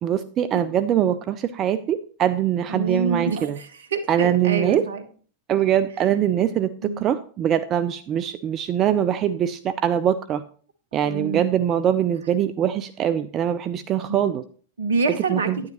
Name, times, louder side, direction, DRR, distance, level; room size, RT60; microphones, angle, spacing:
voice 1, 0.0-3.6 4.1-4.9 5.5-6.7 7.0-10.4 10.9-14.4 15.3-15.6, right 10 dB, 30° right, 11 dB, 0.5 m, -22 dB
voice 2, 2.7-5.0 6.8-7.0 11.0-11.5 14.8-15.5, right 4 dB, 65° right, 9 dB, 1.2 m, -26 dB
10.5 x 9.7 x 3.0 m, 0.43 s
figure-of-eight pair, 90°, 0 cm